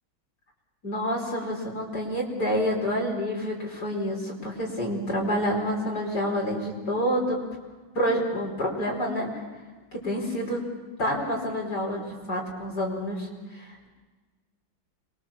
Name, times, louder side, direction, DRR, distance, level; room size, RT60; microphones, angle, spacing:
voice 1, 0.8-7.4 8.0-9.4 9.9-10.7 11.0-13.9, equal, 55° left, -1 dB, 5.4 m, -28 dB
27.0 x 22.5 x 7.2 m, 1.3 s
omnidirectional pair, 2.2 m